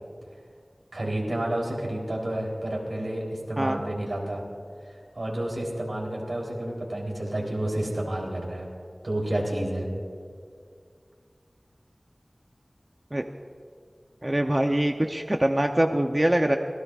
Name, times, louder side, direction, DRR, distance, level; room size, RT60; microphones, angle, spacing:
voice 1, 0.9-4.4 5.2-8.7 9.0-9.9, right 1 dB, 75° right, -2 dB, 3.7 m, -30 dB
voice 2, 14.2-16.6, right 1 dB, 30° right, 4 dB, 0.7 m, -23 dB
26.5 x 18.0 x 2.5 m, 2.2 s
wide cardioid pair, 45°, 0 cm